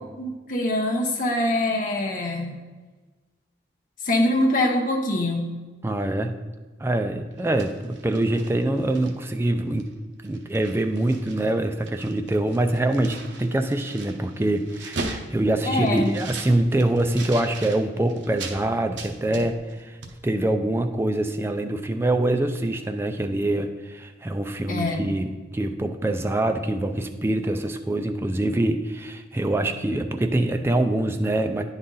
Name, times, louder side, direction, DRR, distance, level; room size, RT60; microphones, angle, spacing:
voice 1, 0.2-2.6 4.0-5.5 15.6-16.1 24.7-25.1, left 1 dB, 45° left, 1 dB, 0.8 m, -24 dB
voice 2, 5.8-6.3 6.8-9.9 10.2-20.0 20.2-31.6, right 1 dB, 15° right, 6 dB, 0.3 m, -24 dB
sound 1, 7.3-9.4 9.8-9.9 10.2-11.5 11.8-18.6 19.0-19.8 20.0-20.2, right 3 dB, 70° right, 0.8 m, -38 dB
9.6 x 4.0 x 3.8 m, 1.3 s
head